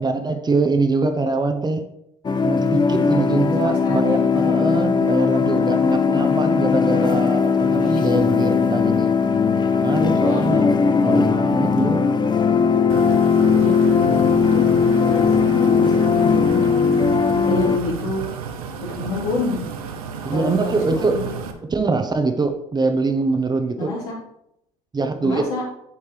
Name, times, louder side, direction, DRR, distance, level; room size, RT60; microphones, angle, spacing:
voice 1, 0.0-1.8 2.4-9.1 9.8-10.7 11.0-12.0 20.2-21.2 21.7-24.0 24.9-25.5, right 3 dB, 25° right, 7 dB, 1.1 m, -23 dB
sound 1, 2.2-17.8, left 5 dB, 25° left, 0.6 m, -18 dB
voice 2, 3.6-4.2 7.8-7.9 10.9-11.2 13.6-14.3 14.9-16.7 17.4-18.2 18.8-19.6 20.3-21.4 23.8-24.1 25.2-25.6, left 3 dB, 75° left, -5 dB, 3.7 m, -29 dB
sound 2, 12.9-21.5, right 6 dB, 80° right, 0.9 m, -32 dB
9.6 x 7.0 x 3.4 m, 0.79 s
hypercardioid pair, 65°, 18 cm